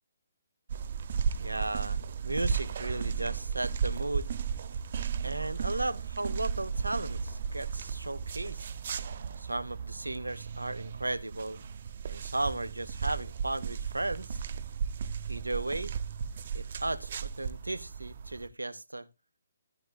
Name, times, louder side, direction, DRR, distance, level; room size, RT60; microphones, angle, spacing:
sound 1, 0.7-18.5, right 7 dB, 50° right, 0.8 m, -35 dB
voice 1, 1.4-4.3 5.2-8.7 9.4-11.6 12.1-14.4 15.3-15.9 16.5-19.1, right 2 dB, 85° right, 0.8 m, -35 dB
15.0 x 10.5 x 2.2 m
figure-of-eight pair, 135°, 0 cm